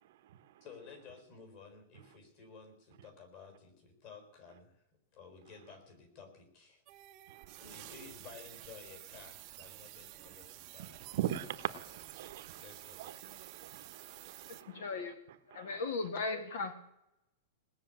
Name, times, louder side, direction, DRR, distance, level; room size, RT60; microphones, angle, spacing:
voice 1, 0.6-4.8 5.1-6.8 7.6-11.8 12.6-13.5, left 5 dB, 35° left, 4.1 m, -54 dB
sound 1, 6.9-14.6, right 16 dB, 30° right, 0.8 m, -51 dB
voice 2, 10.8-12.6 13.0-14.9 15.5-15.7, right 12 dB, 50° right, 1.0 m, -40 dB
voice 3, 14.7-15.2 15.5-16.7, left 4 dB, 60° left, 1.9 m, -37 dB
19.0 x 6.8 x 9.0 m
supercardioid pair, 175°, 0 cm